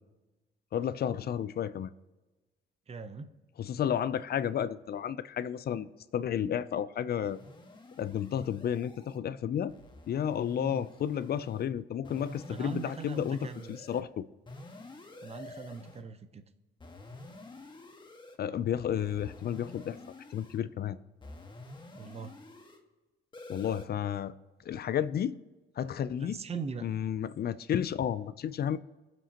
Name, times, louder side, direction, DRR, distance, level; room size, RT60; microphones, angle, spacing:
voice 1, 0.7-1.9 3.6-7.4 8.0-9.7 10.1-14.3 18.4-20.0 20.3-21.0 23.5-24.3 24.6-25.4 25.8-26.4 26.8-28.8, left 9 dB, 50° left, 0.5 m, -32 dB
voice 2, 2.9-3.3 10.6-10.8 12.5-13.8 15.2-16.4 21.9-22.3 26.2-26.9, right 5 dB, 30° right, 0.8 m, -41 dB
sound 1, 7.2-9.2 9.7-11.6 12.0-14.0 14.5-16.0 16.8-18.4 19.0-20.6 21.2-22.8 23.3-23.9, left 2 dB, 25° left, 1.5 m, -49 dB
22.0 x 7.6 x 2.9 m
cardioid pair, 90°, 20 cm